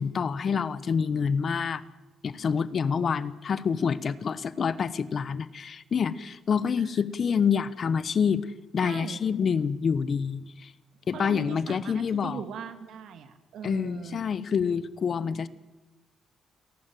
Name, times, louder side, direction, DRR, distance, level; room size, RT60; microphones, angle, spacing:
voice 1, 0.0-1.8 2.2-8.5 8.7-10.7 11.1-12.4 13.6-15.5, left 6 dB, 50° left, 16 dB, 1.1 m, -27 dB
voice 2, 8.8-9.2 11.1-14.2, right 7 dB, 75° right, 8 dB, 1.8 m, -40 dB
29.0 x 11.5 x 9.3 m, 1.1 s
cardioid pair, 90°, 0 cm